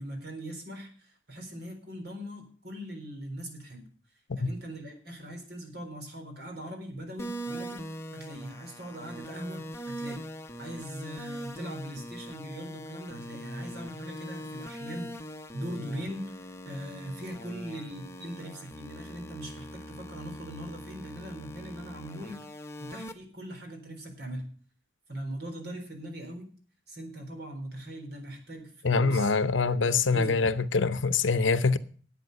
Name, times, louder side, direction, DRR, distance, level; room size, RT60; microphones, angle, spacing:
voice 1, 0.0-3.9 4.4-7.9 8.1-10.3 10.6-22.4 22.8-24.5 25.1-26.5 26.9-29.3 29.7-30.3, equal, 60° right, 4.0 m, -40 dB
sound 1, 7.2-23.1, equal, 15° left, 0.9 m, -42 dB
voice 2, 28.8-31.8, left 4 dB, 85° left, 0.8 m, -24 dB
11.0 x 8.6 x 6.6 m
head